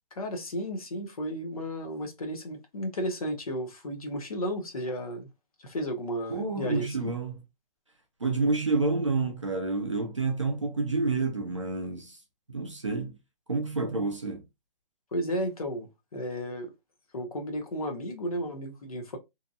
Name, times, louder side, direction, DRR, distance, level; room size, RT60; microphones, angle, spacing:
voice 1, 0.1-5.3 5.6-7.1 15.1-16.7 17.1-19.2, equal, 40° left, 0.6 m, -33 dB
voice 2, 6.3-7.4 8.2-12.2 12.5-13.1 13.5-14.4, right 3 dB, 35° right, 0.4 m, -29 dB
2.6 x 2.1 x 2.5 m
hypercardioid pair, 170°, 29 cm